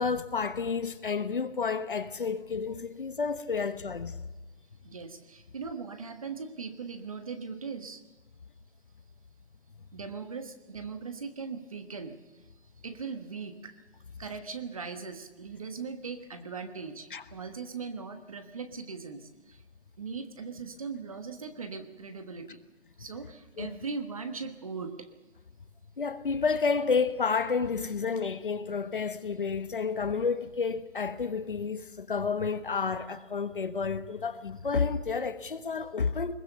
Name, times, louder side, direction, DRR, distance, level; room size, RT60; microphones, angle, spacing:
voice 1, 0.0-4.2 17.1-17.2 23.6-23.7 26.0-36.3, left 5 dB, 50° left, 1.3 m, -30 dB
voice 2, 4.8-8.0 9.9-12.4 12.8-13.8 14.2-19.6 20.0-22.6 23.0-25.1, right 5 dB, 30° right, 1.3 m, -39 dB
21.5 x 20.5 x 6.9 m
hypercardioid pair, 170°, 33 cm